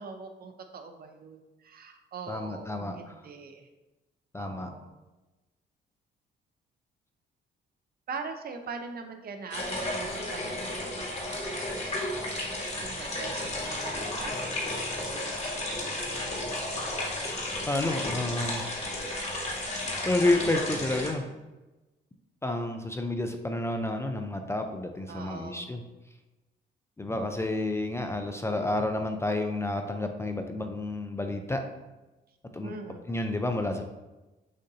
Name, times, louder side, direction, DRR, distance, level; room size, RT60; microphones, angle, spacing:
voice 1, 0.0-3.7 4.4-4.9 8.1-16.5 25.1-25.7 32.6-33.3, right 5 dB, 50° right, 6 dB, 0.6 m, -43 dB
voice 2, 2.3-3.1 4.3-4.7 17.7-18.6 20.1-21.2 22.4-25.8 27.0-31.6 32.5-32.7 33.1-33.8, left 2 dB, 15° left, 5 dB, 0.4 m, -30 dB
sound 1, 9.5-21.1, left 1 dB, 35° left, 1.3 m, -33 dB
6.4 x 2.6 x 2.7 m, 1.1 s
cardioid pair, 90°, 20 cm